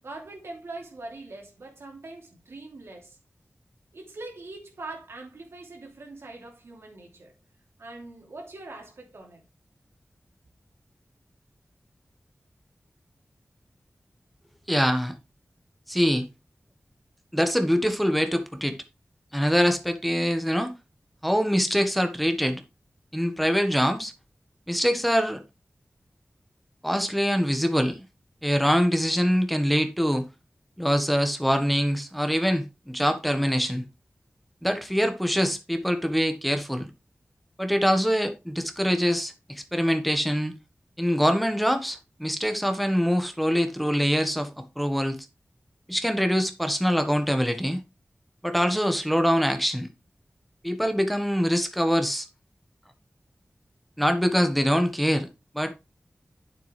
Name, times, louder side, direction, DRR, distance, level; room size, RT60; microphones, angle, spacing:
voice 1, 0.0-3.2 3.9-7.3 7.8-9.4, right 2 dB, 85° right, 3.0 m, -42 dB
voice 2, 14.7-15.1 15.9-16.3 17.3-18.8 19.3-20.7 21.2-22.6 23.1-24.1 24.7-25.4 26.8-28.0 28.4-30.3 30.8-33.8 34.6-36.9 37.6-40.6 41.0-45.2 45.9-47.8 48.4-49.9 50.6-52.3 54.0-55.3 55.5-55.7, equal, ahead, 1.4 m, -24 dB
9.3 x 7.5 x 3.4 m
wide cardioid pair, 60°, 4 cm